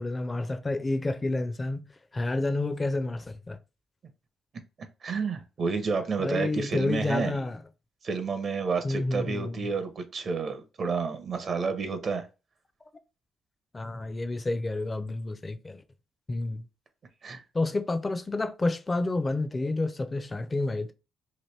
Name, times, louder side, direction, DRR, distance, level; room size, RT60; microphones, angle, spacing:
voice 1, 0.0-1.9 2.1-3.6 6.2-7.6 8.8-9.7 13.7-15.8 16.3-16.6 17.5-20.9, left 2 dB, 25° left, 0.5 m, -29 dB
voice 2, 5.0-7.4 8.0-12.3 17.2-17.4, right 5 dB, 50° right, 0.6 m, -30 dB
2.9 x 2.5 x 3.2 m
cardioid pair, 90°, 0 cm